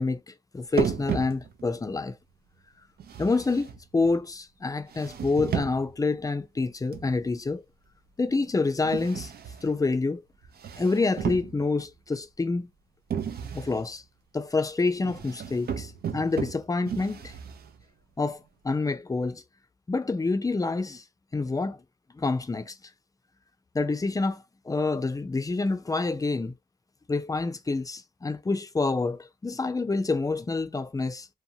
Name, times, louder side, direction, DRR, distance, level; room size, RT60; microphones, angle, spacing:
voice 1, 0.0-2.2 3.2-7.6 8.2-9.3 9.6-10.2 10.8-12.7 13.5-14.0 14.3-17.3 18.2-19.4 19.9-21.0 21.3-21.8 22.1-22.8 23.7-26.5 27.1-31.3, left 3 dB, 20° left, 0.4 m, -27 dB
sound 1, 0.7-1.8 3.0-4.2 4.9-6.0 6.9-7.4 8.8-9.8 10.4-11.9 13.1-13.9 15.0-17.8, right 8 dB, 80° right, 0.5 m, -34 dB
2.7 x 2.2 x 2.7 m
wide cardioid pair, 90°, 16 cm